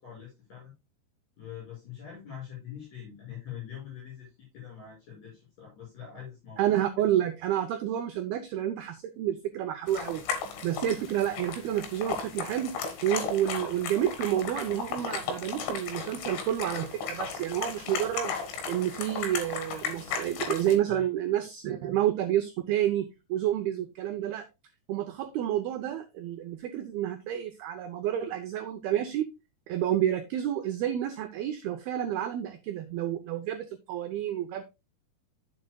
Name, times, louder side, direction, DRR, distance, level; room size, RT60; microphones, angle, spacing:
voice 1, 0.0-0.7 1.4-6.6 20.9-21.1, left 9 dB, 40° left, -5 dB, 7.5 m, -44 dB
voice 2, 6.6-10.3 10.6-12.7 13.0-18.3 18.7-24.4 24.9-29.3 29.7-34.6, right 11 dB, 75° right, 7 dB, 2.4 m, -29 dB
sound 1, 9.9-20.8, left 6 dB, 80° left, 3.9 m, -35 dB
12.0 x 7.6 x 2.3 m, 0.25 s
omnidirectional pair, 5.1 m